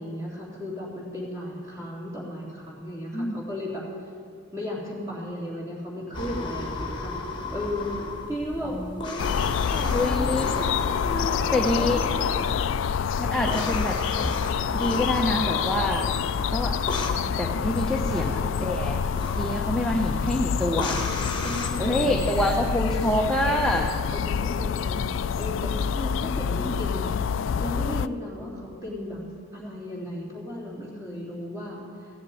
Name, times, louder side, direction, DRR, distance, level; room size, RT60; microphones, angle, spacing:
voice 1, 0.0-3.8 4.5-7.2 7.5-7.9 8.3-9.4 9.7-10.4 11.0-12.7 17.9-18.5 21.4-22.3 22.8-23.3 24.1-25.0 25.3-27.1 27.6-29.2 29.5-32.1, left 1 dB, 15° right, -4 dB, 3.3 m, -35 dB
sound 1, 6.1-21.7, left 3 dB, 20° left, 1.4 m, -34 dB
voice 2, 8.6-9.0 9.9-10.7 11.5-12.0 13.2-14.0 14.7-16.1 16.5-16.7 17.4-19.0 19.3-21.0 21.8-23.9 25.9-26.7, left 1 dB, 5° left, 0 dB, 0.7 m, -26 dB
sound 2, 9.2-28.1, left 7 dB, 65° left, 0.3 m, -27 dB
15.5 x 7.3 x 9.3 m, 2.4 s
head